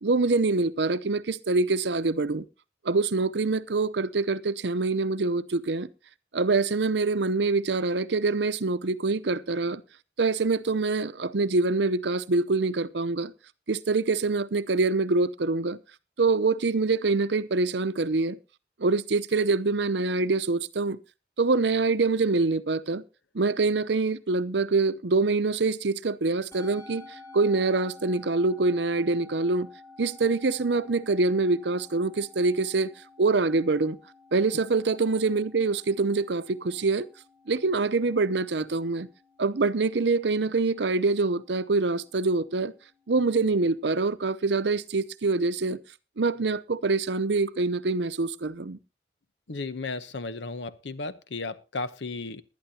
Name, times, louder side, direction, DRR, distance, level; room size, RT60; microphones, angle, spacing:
voice 1, 0.0-2.4 2.8-5.9 6.3-9.8 10.2-13.3 13.7-15.8 16.2-18.4 18.8-21.0 21.4-23.0 23.3-27.0 27.3-29.7 30.0-32.9 33.2-34.0 34.3-37.1 37.5-39.1 39.4-42.7 43.1-45.8 46.2-48.8, right 3 dB, 70° right, 0.7 m, -25 dB
Musical instrument, 26.5-45.0, left 3 dB, 15° left, 3.6 m, -53 dB
voice 2, 49.5-52.4, left 3 dB, 80° left, 0.9 m, -34 dB
20.5 x 11.0 x 2.8 m
head